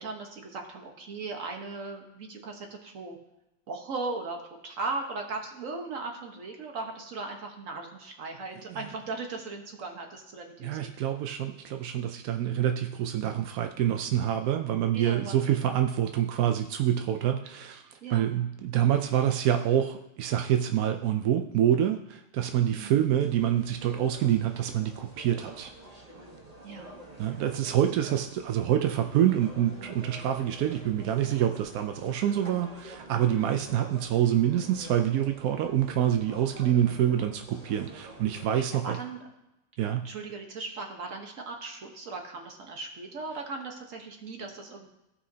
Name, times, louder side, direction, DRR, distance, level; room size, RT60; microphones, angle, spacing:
voice 1, 0.0-3.2 3.7-4.4 4.6-10.9 14.9-15.6 18.0-18.3 22.7-23.0 26.6-26.9 27.3-27.4 33.3-33.6 38.5-39.3 40.0-44.9, right 3 dB, 50° right, 3 dB, 1.4 m, -38 dB
voice 2, 10.6-17.8 18.1-25.7 27.2-39.0 39.8-40.0, right 10 dB, 75° right, 6 dB, 0.8 m, -26 dB
sound 1, 23.2-38.5, right 1 dB, 25° right, 1.1 m, -48 dB
15.5 x 5.6 x 2.8 m, 0.91 s
omnidirectional pair, 2.0 m